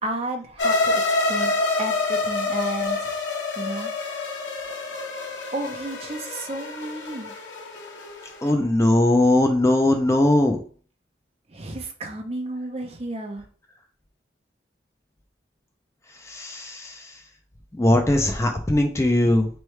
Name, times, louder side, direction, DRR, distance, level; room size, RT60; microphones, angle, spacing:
voice 1, 0.0-3.2 3.6-3.9 5.5-7.3 11.5-13.4, right 1 dB, 35° right, 4 dB, 0.6 m, -32 dB
sound 1, 0.6-8.5, left 3 dB, 85° left, 1.2 m, -27 dB
voice 2, 8.4-10.6 16.2-17.1 17.8-19.5, left 1 dB, 15° left, 4 dB, 0.4 m, -20 dB
4.4 x 3.1 x 3.2 m, 0.42 s
head